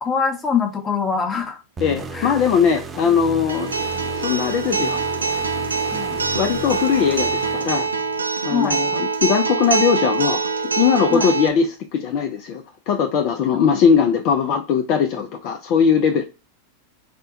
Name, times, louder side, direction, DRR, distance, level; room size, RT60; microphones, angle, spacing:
voice 1, 0.0-1.6 2.1-2.3 3.1-3.2 3.9-4.0 5.9-6.2 8.5-8.8 11.1-11.3 15.1-15.2, left 6 dB, 20° left, 0.7 m, -24 dB
voice 2, 1.8-3.7 4.1-5.0 6.3-7.9 8.4-10.5 10.8-16.2, left 7 dB, 40° left, 0.4 m, -20 dB
sound 1, 1.8-8.2, right 3 dB, 15° right, 0.4 m, -34 dB
Acoustic guitar, 3.5-11.5, right 4 dB, 75° right, 0.4 m, -24 dB
4.3 x 2.1 x 2.6 m
figure-of-eight pair, 90°, 0 cm